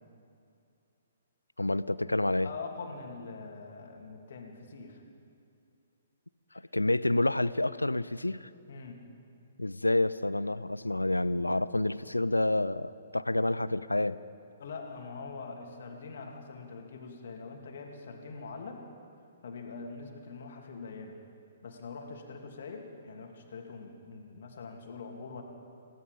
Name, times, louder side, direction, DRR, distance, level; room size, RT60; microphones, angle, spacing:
voice 1, 1.6-2.5 6.7-8.5 9.6-14.2, left 2 dB, 85° left, 17 dB, 0.6 m, -28 dB
voice 2, 2.4-5.0 6.5-6.6 8.7-9.0 14.6-18.9 19.4-21.2 21.6-25.4, left 4 dB, 55° left, 2 dB, 2.9 m, -43 dB
29.0 x 17.0 x 5.4 m, 2.6 s
figure-of-eight pair, 120°, 0 cm